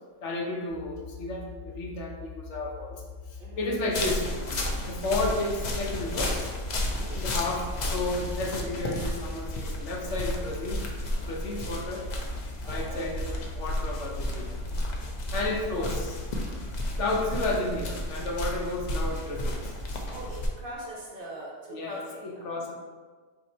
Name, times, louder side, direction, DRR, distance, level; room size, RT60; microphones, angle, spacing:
voice 1, 0.2-3.0 3.3-4.3 4.8-6.4 7.1-10.8 11.2-12.0 12.7-13.3 13.6-14.6 15.3-16.1 17.0-19.7 21.7-22.7, left 2 dB, 75° left, 0 dB, 1.0 m, -32 dB
sound 1, 0.7-17.0, left 5 dB, 75° right, 1.0 m, -43 dB
voice 2, 3.4-3.7 6.9-7.2 12.6-13.2 15.6-16.1 20.1-22.7, right 1 dB, 50° right, -4 dB, 1.1 m, -42 dB
sound 2, 3.9-20.5, left 1 dB, 50° left, 0.6 m, -32 dB
4.2 x 2.7 x 4.3 m, 1.4 s
omnidirectional pair, 1.3 m